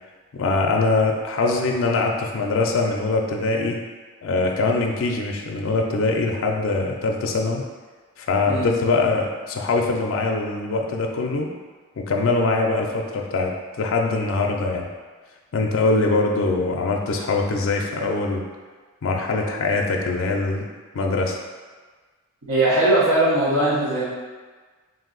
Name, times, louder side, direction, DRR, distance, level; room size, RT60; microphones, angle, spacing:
voice 1, 0.3-3.8 4.2-7.6 8.2-11.5 12.0-14.9 15.5-18.4 19.0-20.7 20.9-21.4, left 3 dB, 65° left, 0 dB, 0.4 m, -23 dB
voice 2, 22.5-24.0, right 1 dB, 80° right, -8 dB, 0.9 m, -19 dB
3.7 x 2.6 x 3.8 m, 1.4 s
head